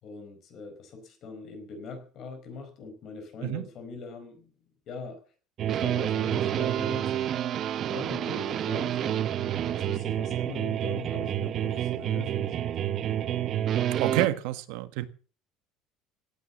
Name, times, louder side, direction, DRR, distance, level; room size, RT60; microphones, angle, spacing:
voice 1, 0.0-4.5 4.9-5.2 5.7-7.1 7.9-9.3 9.6-12.7, left 4 dB, 40° left, 4.7 m, -41 dB
sound 1, 5.6-14.3, right 11 dB, 35° right, 0.9 m, -29 dB
voice 2, 14.0-15.1, right 15 dB, 80° right, 1.6 m, -28 dB
17.5 x 9.9 x 7.0 m
cardioid pair, 175°, 0 cm